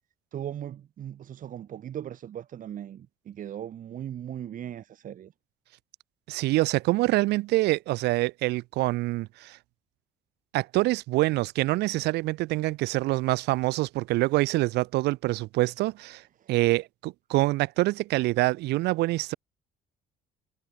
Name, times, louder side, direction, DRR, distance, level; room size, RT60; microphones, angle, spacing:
voice 1, 0.3-5.3 16.4-16.5, right 10 dB, 55° right, 1.9 m, -38 dB
voice 2, 6.3-9.6 10.5-16.2 16.5-19.3, right 19 dB, 90° right, 3.9 m, -25 dB
cardioid pair, 110°, 17 cm